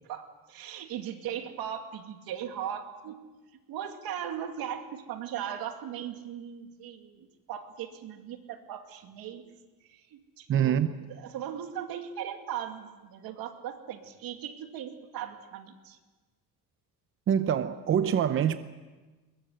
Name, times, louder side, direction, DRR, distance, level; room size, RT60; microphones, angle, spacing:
voice 1, 0.1-3.2 3.7-9.4 9.9-16.0, right 9 dB, 80° right, 2.5 m, -38 dB
voice 2, 10.5-10.9 17.3-18.6, right 9 dB, 35° right, 0.7 m, -25 dB
22.0 x 21.5 x 8.0 m
cardioid pair, 170°, 36 cm